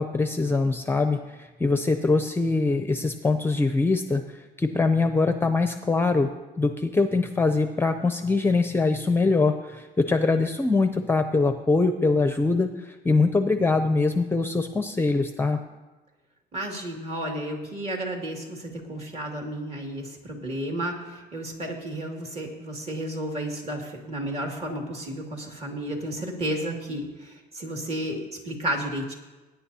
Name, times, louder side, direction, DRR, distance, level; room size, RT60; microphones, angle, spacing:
voice 1, 0.0-15.6, left 3 dB, 15° left, 7 dB, 0.5 m, -23 dB
voice 2, 16.5-29.1, right 1 dB, 40° right, 1 dB, 2.4 m, -32 dB
20.0 x 9.7 x 2.8 m, 1.2 s
cardioid pair, 110°, 17 cm